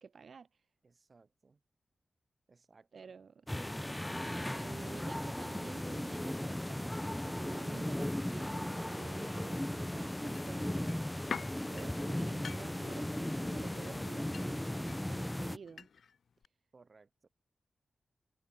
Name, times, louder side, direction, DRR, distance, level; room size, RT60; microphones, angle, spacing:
voice 1, 0.0-0.7 2.9-3.8 4.2-11.4 11.7-15.9, right 5 dB, 60° right, 1.9 m, -51 dB
voice 2, 0.8-1.6 2.5-3.1 16.7-17.3, right 4 dB, 40° right, 4.4 m, -63 dB
sound 1, 3.5-15.6, left 1 dB, 10° left, 0.3 m, -37 dB
sound 2, 10.3-16.2 16.4-16.5, left 6 dB, 70° left, 0.6 m, -47 dB
wide cardioid pair, 130°, 0 cm